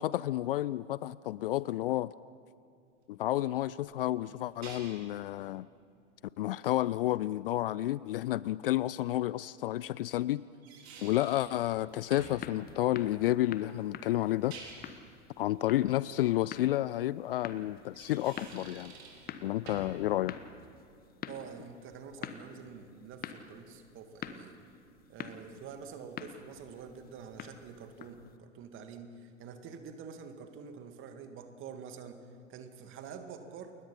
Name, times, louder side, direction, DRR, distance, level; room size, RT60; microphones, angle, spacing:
voice 1, 0.0-2.1 3.1-5.7 6.4-10.4 11.0-14.6 15.4-18.9 19.4-20.3, left 14 dB, 50° left, 0.4 m, -31 dB
sound 1, 3.8-5.1 8.4-8.5 10.4-11.6 12.1-12.4 14.3-15.0 17.8-19.3 19.7-20.0, right 4 dB, 60° right, 5.0 m, -49 dB
sound 2, 11.9-28.4, left 8 dB, 25° left, 1.2 m, -47 dB
voice 2, 21.3-24.6 25.1-32.2 32.5-33.8, right 6 dB, 30° right, 2.2 m, -47 dB
29.0 x 21.5 x 5.7 m
figure-of-eight pair, 90°, 37 cm